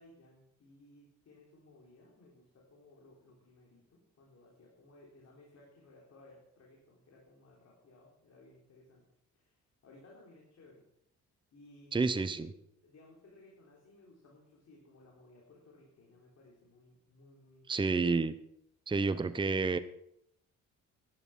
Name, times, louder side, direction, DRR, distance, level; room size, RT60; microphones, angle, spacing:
voice 1, 0.0-9.1 9.3-10.8 11.5-12.4 12.8-18.1 19.0-19.2, left 2 dB, 60° left, -3 dB, 3.6 m, -59 dB
voice 2, 11.9-12.5 17.7-18.3 18.9-19.8, right 4 dB, 15° right, 12 dB, 0.7 m, -29 dB
11.0 x 11.0 x 5.9 m, 0.75 s
cardioid pair, 90°, 30 cm